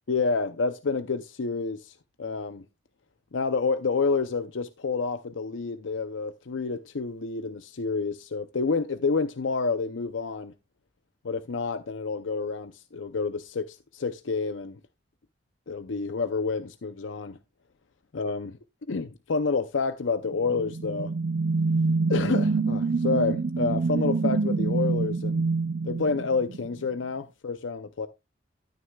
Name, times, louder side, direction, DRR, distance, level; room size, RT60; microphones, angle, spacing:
voice 1, 0.1-2.6 3.3-10.5 11.2-14.8 15.7-17.4 18.1-18.6 18.9-21.1 22.1-25.5 25.8-28.1, left 4 dB, 90° left, 0.6 m, -29 dB
sound 1, 20.3-26.8, right 4 dB, 55° right, 0.5 m, -26 dB
12.5 x 9.7 x 2.3 m
head